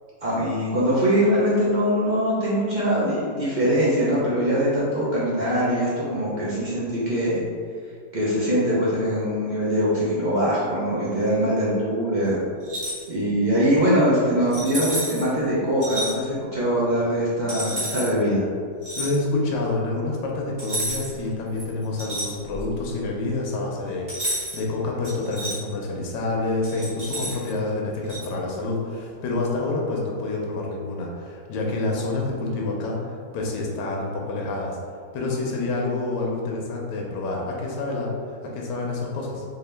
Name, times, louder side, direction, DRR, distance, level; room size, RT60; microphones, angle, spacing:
voice 1, 0.2-7.4 8.1-12.4 13.1-18.5, equal, 60° right, -8 dB, 0.4 m, -22 dB
sound 1, 12.6-13.1 14.5-15.3 15.8-16.1 17.5-18.1 18.8-19.2 20.6-21.2 21.6-22.8 24.1-24.6 25.0-25.6 26.6-27.5 28.1-28.3, right 1 dB, 25° right, 1.2 m, -30 dB
voice 2, 19.0-34.8 35.1-39.4, left 2 dB, 85° left, -1 dB, 1.3 m, -28 dB
3.6 x 2.7 x 3.3 m, 2.2 s
omnidirectional pair, 1.8 m